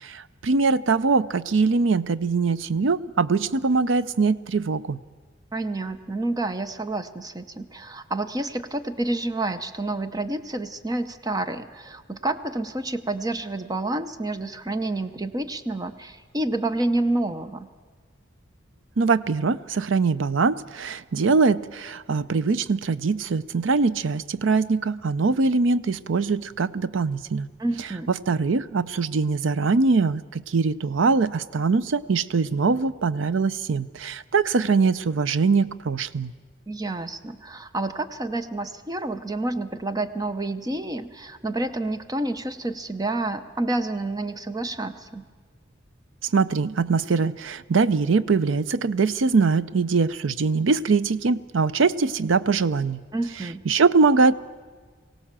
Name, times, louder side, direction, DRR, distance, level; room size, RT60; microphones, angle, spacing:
voice 1, 0.0-5.0 19.0-27.5 28.1-36.3 46.2-53.0 53.7-54.3, right 4 dB, 75° right, 17 dB, 0.6 m, -22 dB
voice 2, 5.5-17.7 27.6-28.1 36.7-45.2 53.1-53.6, right 2 dB, 20° right, 10 dB, 0.8 m, -29 dB
23.0 x 17.0 x 7.4 m, 1.5 s
head